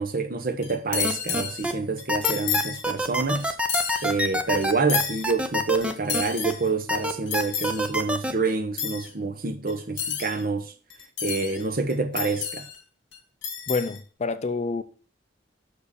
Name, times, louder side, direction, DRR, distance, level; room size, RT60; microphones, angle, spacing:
voice 1, 0.0-3.5 4.0-10.7 11.2-12.6, right 3 dB, 45° right, 0.8 m, -27 dB
sound 1, 0.6-1.7 2.0-2.8 3.3-4.1 4.6-5.3 5.8-6.7 7.0-7.9 8.5-8.6 8.8-9.1 9.7-10.4 10.9-11.6 11.9-12.8 13.1-13.2 13.4-14.0, left 8 dB, 65° left, 1.8 m, -30 dB
sound 2, 1.0-1.7 2.1-6.5 6.9-8.3, equal, 5° right, 0.6 m, -26 dB
voice 2, 13.7-14.8, left 3 dB, 35° left, 0.5 m, -27 dB
6.5 x 4.9 x 6.7 m
head